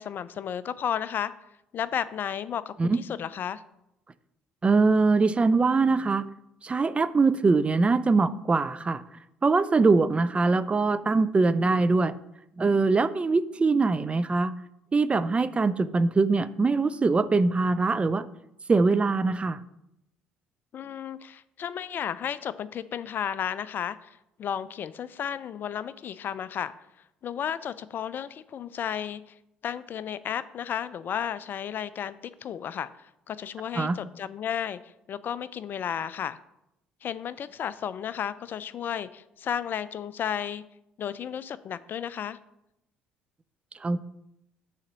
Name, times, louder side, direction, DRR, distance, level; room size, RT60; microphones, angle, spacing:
voice 1, 0.0-1.3 1.7-3.6 20.7-26.7 27.2-29.2 29.6-34.8 35.1-36.4 37.0-40.6 41.0-42.4, left 9 dB, 50° left, 16 dB, 0.4 m, -33 dB
voice 2, 4.6-6.3 6.6-9.0 9.4-12.1 12.6-14.5 14.9-18.3 18.7-19.6 33.8-34.0 43.8-44.0, right 3 dB, 25° right, 14 dB, 0.4 m, -23 dB
6.4 x 4.2 x 6.2 m, 0.83 s
hypercardioid pair, 60°, 4 cm